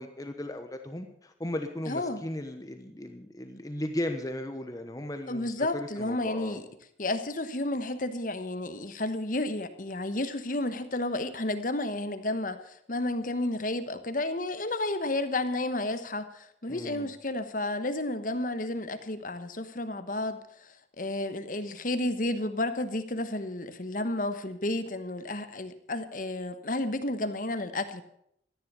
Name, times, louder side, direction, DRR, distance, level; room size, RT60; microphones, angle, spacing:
voice 1, 0.0-6.6 16.7-17.1, left 1 dB, 20° left, 6 dB, 1.0 m, -36 dB
voice 2, 1.9-2.2 5.3-6.6 7.0-28.0, left 2 dB, 45° left, 10 dB, 1.2 m, -32 dB
14.0 x 10.0 x 6.8 m, 0.72 s
head